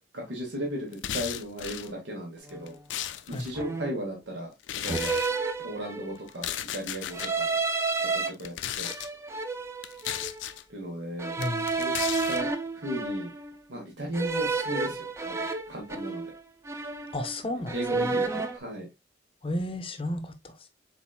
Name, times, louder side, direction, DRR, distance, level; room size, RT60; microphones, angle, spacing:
voice 1, 0.1-2.8 3.3-5.2 5.6-7.6 8.0-8.9 10.7-11.4 11.6-11.9 12.3-13.3 13.7-16.2 17.7-18.9, equal, 80° right, 1.2 m, -36 dB
sound 1, 0.9-1.9 2.5-3.5 4.6-5.3 6.3-7.3 8.3-9.1 9.8-10.6 11.4-12.4, left 11 dB, 85° left, 0.4 m, -35 dB
sound 2, 2.5-2.7 3.5-4.1 4.9-6.3 7.1-8.3 8.8-10.4 11.2-13.5 14.1-16.4 16.6-17.4 17.7-18.6, right 4 dB, 15° right, 0.4 m, -31 dB
voice 2, 11.4-11.7 17.1-18.2 19.4-20.6, left 1 dB, 30° left, 0.6 m, -33 dB
4.4 x 3.9 x 2.2 m
head